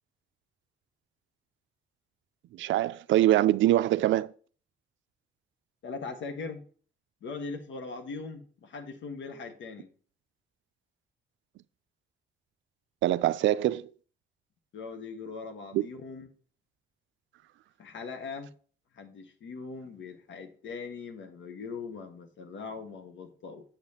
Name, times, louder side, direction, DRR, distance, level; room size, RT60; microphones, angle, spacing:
voice 1, 2.5-4.3 13.0-13.9 15.7-15.8, right 14 dB, 75° right, 0.4 m, -24 dB
voice 2, 5.8-6.6 7.2-9.9 14.7-16.3 17.8-18.5 18.9-23.6, left 4 dB, 70° left, 1.5 m, -40 dB
7.9 x 6.8 x 2.8 m
cardioid pair, 90°, 20 cm